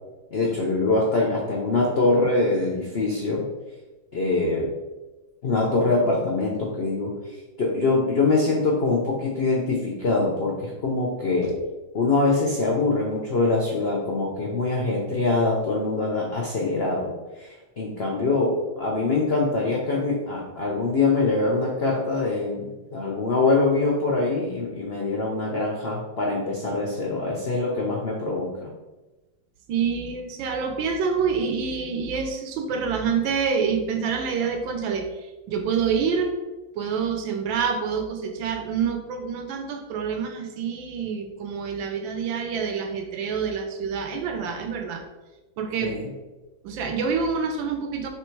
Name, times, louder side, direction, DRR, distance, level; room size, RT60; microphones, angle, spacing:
voice 1, 0.3-3.4 4.1-4.7 5.4-11.5 11.9-28.7 45.8-46.1, left 3 dB, 85° left, -2 dB, 0.5 m, -24 dB
voice 2, 29.7-35.1 35.5-36.3 36.8-45.0 45.6-46.1 46.6-48.1, right 6 dB, 85° right, 5 dB, 1.4 m, -27 dB
3.6 x 3.1 x 4.5 m, 1.1 s
omnidirectional pair, 2.0 m